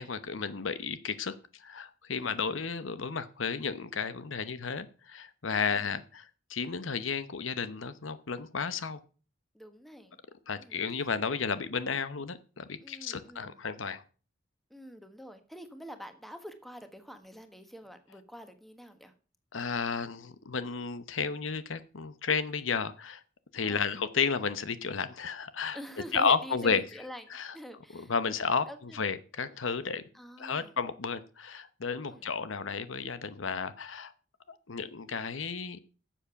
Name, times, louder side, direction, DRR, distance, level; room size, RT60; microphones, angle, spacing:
voice 1, 0.0-1.3 1.6-9.0 10.5-14.0 19.5-23.2 23.5-25.8 26.1-26.8 27.3-27.5 27.9-28.7 28.9-30.0 30.4-34.1 34.5-35.8, left 5 dB, 85° left, 13 dB, 0.9 m, -32 dB
voice 2, 9.5-10.2 10.6-11.1 12.8-13.6 14.7-19.1 23.6-23.9 25.7-29.2 30.1-30.8 32.0-32.3, equal, ahead, 8 dB, 1.3 m, -47 dB
12.0 x 7.4 x 5.7 m, 0.38 s
head